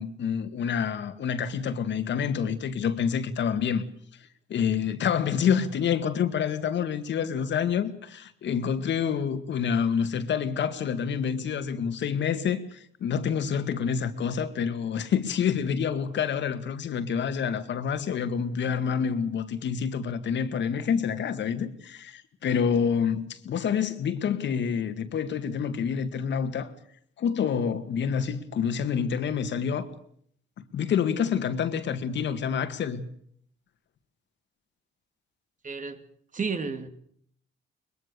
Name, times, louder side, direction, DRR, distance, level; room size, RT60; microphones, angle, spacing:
voice 1, 0.0-3.8 4.5-26.7 27.2-29.9 30.7-33.0, left 7 dB, 65° left, 2.0 m, -27 dB
voice 2, 35.6-36.0 36.3-36.9, right 5 dB, 40° right, 2.6 m, -31 dB
22.5 x 21.5 x 6.9 m
cardioid pair, 90°, 20 cm